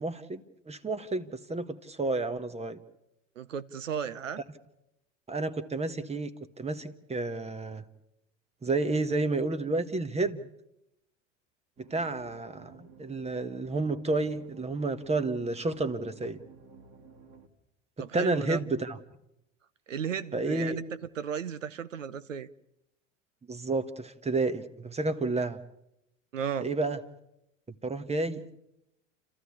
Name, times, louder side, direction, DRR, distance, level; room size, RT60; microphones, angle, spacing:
voice 1, 0.0-2.8 5.3-6.3 6.6-7.8 8.6-10.4 11.9-16.4 18.0-19.0 20.3-20.8 23.5-25.6 26.6-27.0 27.8-28.4, right 2 dB, 15° right, 1.4 m, -30 dB
voice 2, 3.4-4.4 18.0-18.6 19.9-20.8 21.2-22.5 26.3-26.7, right 7 dB, 85° right, 0.9 m, -35 dB
sound 1, 11.8-17.5, right 4 dB, 50° right, 2.7 m, -53 dB
30.0 x 13.5 x 8.5 m
hypercardioid pair, 75°, 37 cm